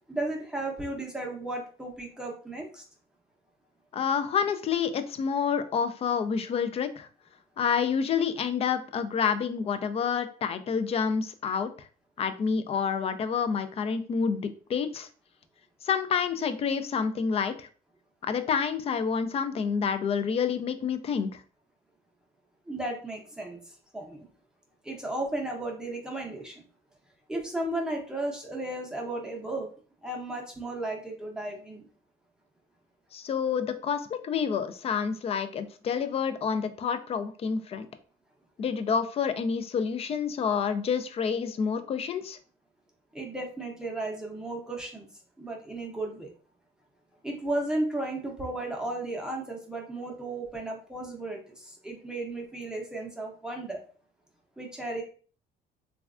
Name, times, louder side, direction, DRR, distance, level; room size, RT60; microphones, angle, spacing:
voice 1, 0.1-2.8 22.7-23.6 23.9-24.2 24.8-26.5 27.3-29.7 30.0-31.9 43.1-45.1 45.4-46.3 47.2-53.8 54.6-55.0, right 2 dB, 5° right, -1 dB, 0.6 m, -34 dB
voice 2, 3.9-7.1 7.6-11.9 12.2-15.1 15.8-17.7 18.2-21.4 33.1-37.9 38.6-42.4, left 6 dB, 35° left, 10 dB, 0.3 m, -28 dB
3.2 x 2.3 x 2.4 m, 0.40 s
cardioid pair, 110°, 17 cm